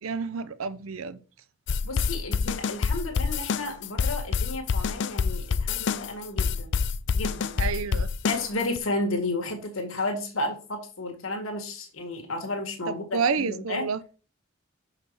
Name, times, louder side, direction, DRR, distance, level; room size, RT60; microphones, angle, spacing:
voice 1, 0.0-1.2 7.6-8.1 12.9-14.0, right 5 dB, 90° right, 0.6 m, -29 dB
sound 1, 1.7-8.8, left 5 dB, 55° left, 0.4 m, -27 dB
voice 2, 1.8-6.7 7.1-7.6 8.2-13.9, left 2 dB, 90° left, 1.9 m, -32 dB
6.2 x 5.8 x 4.7 m
head